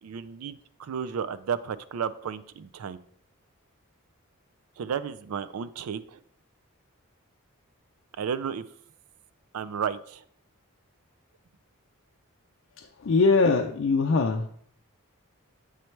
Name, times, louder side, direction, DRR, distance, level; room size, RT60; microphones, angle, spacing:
voice 1, 0.0-3.0 4.8-6.2 8.2-8.6 9.5-10.2, right 7 dB, 80° right, 15 dB, 0.4 m, -33 dB
voice 2, 13.0-14.5, left 3 dB, 60° left, 3 dB, 0.4 m, -22 dB
8.1 x 3.2 x 4.4 m, 0.65 s
head